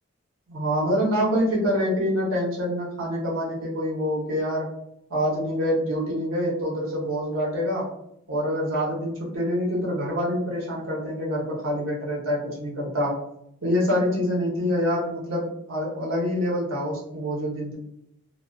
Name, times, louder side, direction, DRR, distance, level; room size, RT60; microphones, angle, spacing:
voice 1, 0.5-4.7 5.1-7.9 8.3-13.2 13.6-17.8, equal, 75° right, -4 dB, 0.9 m, -26 dB
2.3 x 2.3 x 2.3 m, 0.76 s
head